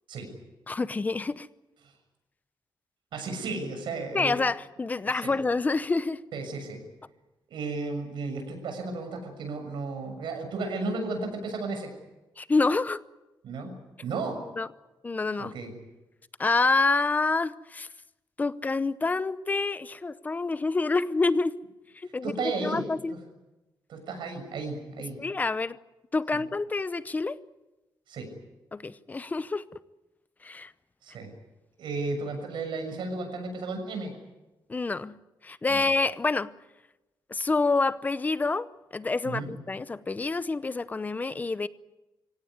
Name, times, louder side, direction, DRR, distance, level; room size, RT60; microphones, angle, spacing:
voice 1, 0.7-1.5 4.1-6.2 12.4-13.0 14.6-14.7 15.0-15.5 16.4-17.9 18.4-21.6 21.9-22.3 22.6-23.2 25.2-25.8 26.1-27.4 28.7-29.8 30.4-30.7 34.7-35.2 35.4-36.5 37.3-38.7 38.9-41.7, left 3 dB, 20° left, 15 dB, 0.7 m, -27 dB
voice 2, 3.1-4.4 5.2-5.3 6.3-6.8 7.5-11.9 13.4-13.7 14.0-14.4 15.4-15.7 22.2-22.8 23.9-25.2 26.3-26.4 28.1-28.3 31.0-31.3 31.8-34.1 35.7-35.9 39.2-39.5, right 3 dB, 85° right, 5 dB, 6.8 m, -34 dB
24.5 x 17.0 x 9.6 m, 1.1 s
wide cardioid pair, 155°, 8 cm